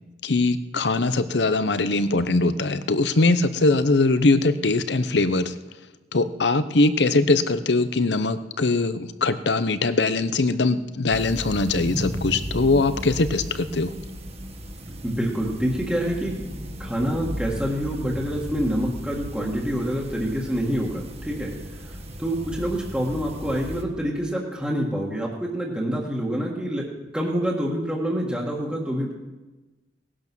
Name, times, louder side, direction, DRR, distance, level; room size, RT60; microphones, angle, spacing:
voice 1, 0.2-5.5 6.1-13.9, left 3 dB, 70° left, 13 dB, 0.8 m, -21 dB
sound 1, 11.1-23.8, equal, 35° right, 1.6 m, -35 dB
voice 2, 15.0-16.4 16.8-21.5 21.9-26.9 27.1-29.1, equal, 5° right, -4 dB, 1.8 m, -27 dB
18.0 x 11.0 x 6.2 m, 1.2 s
head